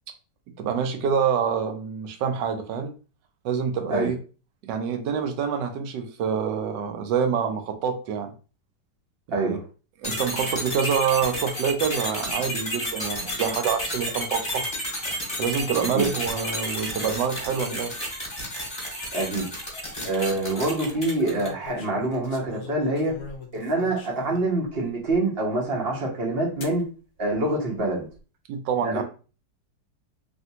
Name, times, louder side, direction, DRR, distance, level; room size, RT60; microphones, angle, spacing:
voice 1, 0.6-2.9 3.4-4.2 4.6-8.3 9.3-9.6 10.0-14.7 15.4-18.0 28.5-29.0, right 7 dB, 80° right, 1.2 m, -26 dB
voice 2, 9.3-9.6 15.9-16.1 19.1-19.5 20.0-23.2 23.5-26.8 27.2-28.1 28.8-29.0, right 2 dB, 45° right, 0.8 m, -26 dB
sound 1, 10.0-21.6, equal, 20° left, 1.2 m, -31 dB
sound 2, 19.5-19.9 21.1-24.5 25.1-25.2 26.6-26.8 27.7-28.2, left 5 dB, 60° left, 0.8 m, -42 dB
3.3 x 2.6 x 2.7 m
omnidirectional pair, 1.9 m